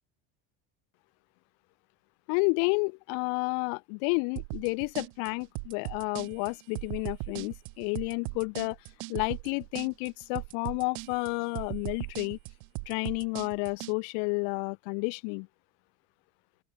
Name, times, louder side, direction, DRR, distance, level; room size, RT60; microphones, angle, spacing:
voice 1, 2.3-8.8 9.1-12.4 12.9-15.5, left 40 dB or more, 75° left, 1.4 m, -31 dB
sound 1, 4.4-13.9, right 40 dB or more, 80° right, 4.8 m, -39 dB
open air
supercardioid pair, 80°, 40 cm